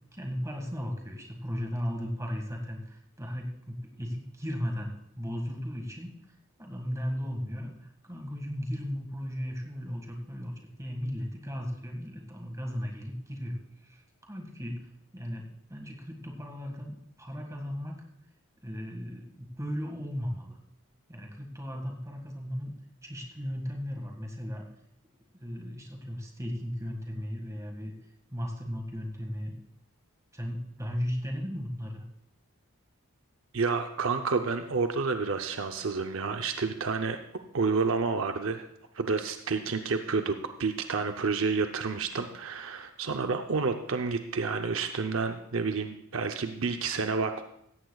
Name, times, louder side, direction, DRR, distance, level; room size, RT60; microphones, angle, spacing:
voice 1, 0.1-6.1 6.6-7.7 8.0-14.8 15.1-18.0 18.6-20.6 21.1-22.7 23.0-24.7 25.4-27.9 28.3-29.6 30.3-32.0, equal, 15° right, 1 dB, 1.8 m, -36 dB
voice 2, 33.5-37.2 37.5-38.7 38.9-47.4, right 4 dB, 65° right, 6 dB, 0.7 m, -29 dB
16.5 x 14.5 x 2.4 m, 0.76 s
head